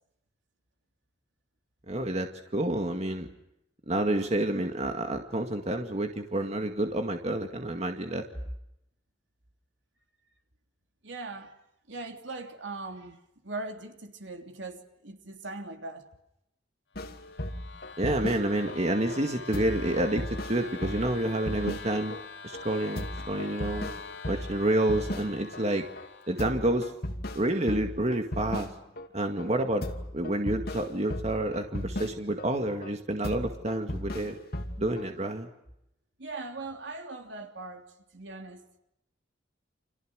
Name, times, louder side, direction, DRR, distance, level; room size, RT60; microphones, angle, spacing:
voice 1, 1.9-3.3 3.9-8.2 18.0-22.2 22.4-23.9 24.3-25.9 26.3-26.9 27.3-28.7 29.1-29.9 30.1-34.4 34.8-35.5, right 1 dB, 35° right, 2.1 m, -29 dB
voice 2, 11.0-11.5 11.9-13.2 13.4-16.0 36.2-37.9 38.1-38.6, right 3 dB, 75° right, 3.3 m, -40 dB
sound 1, 16.9-18.8 19.1-19.2 19.5-22.2 22.5-22.6 23.0-25.6 26.0-26.1 26.4-29.1 29.4-29.5 29.8-32.5 32.8-32.9 33.2-35.1, left 1 dB, 55° left, 2.6 m, -37 dB
sound 2, 17.0-26.7, left 4 dB, 75° left, 7.9 m, -44 dB
30.0 x 27.5 x 6.4 m
head